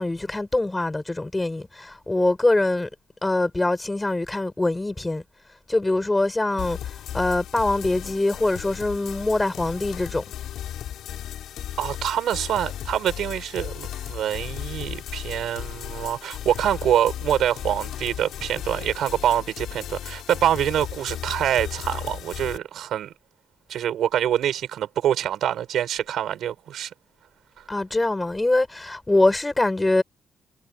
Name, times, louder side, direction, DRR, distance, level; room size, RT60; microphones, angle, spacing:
voice 1, 0.0-2.9 3.2-5.2 5.7-10.2 27.7-30.0, left 2 dB, 10° left, 7.2 m, -23 dB
sound 1, 6.6-22.6, left 11 dB, 85° left, 5.2 m, -35 dB
voice 2, 11.8-23.1 23.7-26.9, right 10 dB, 75° right, 6.9 m, -25 dB
cardioid pair, 155°, 0 cm